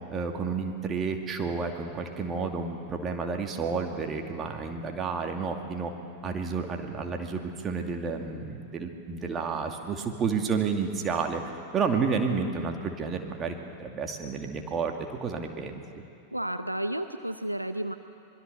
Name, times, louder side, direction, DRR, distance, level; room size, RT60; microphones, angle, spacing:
voice 1, 0.1-5.9 6.2-11.4 11.7-15.8, right 5 dB, 25° right, 3 dB, 2.5 m, -31 dB
voice 2, 16.3-17.9, right 1 dB, 90° right, 9 dB, 0.8 m, -32 dB
25.0 x 22.0 x 6.9 m, 2.5 s
figure-of-eight pair, 90°, 0 cm